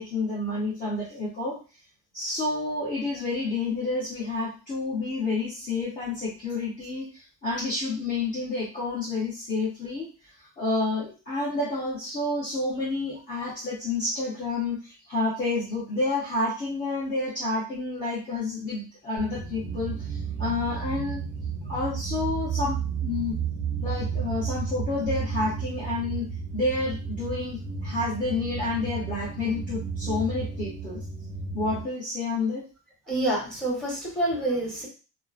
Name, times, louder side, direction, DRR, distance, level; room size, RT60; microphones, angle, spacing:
voice 1, 0.0-1.6 2.1-7.1 7.4-10.1 10.6-21.2 21.7-23.4 23.8-31.0 31.5-32.6, left 3 dB, 20° left, -6 dB, 0.7 m, -29 dB
sound 1, 19.2-31.8, right 6 dB, 20° right, 0.3 m, -32 dB
voice 2, 33.1-34.9, right 1 dB, ahead, -4 dB, 1.0 m, -27 dB
2.7 x 2.1 x 2.4 m, 0.34 s
cardioid pair, 155°, 38 cm